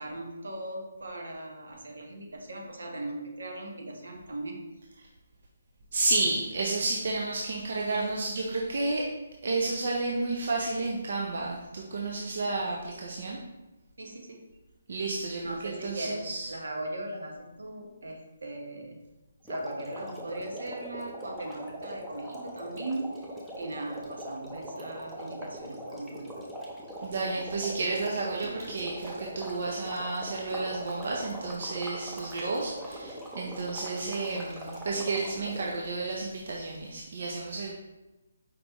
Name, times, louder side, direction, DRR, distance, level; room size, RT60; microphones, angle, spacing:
voice 1, 0.0-4.6 14.0-14.4 15.4-19.0 19.4-23.3 23.6-26.3, right 1 dB, 85° right, 1 dB, 1.0 m, -38 dB
voice 2, 5.9-9.0 9.4-13.4 14.9-16.5 27.0-37.7, right 3 dB, 60° right, -2 dB, 0.6 m, -31 dB
sound 1, 19.4-35.9, equal, 5° right, 0.7 m, -41 dB
5.0 x 3.4 x 3.0 m, 1.0 s
hypercardioid pair, 160°, 0 cm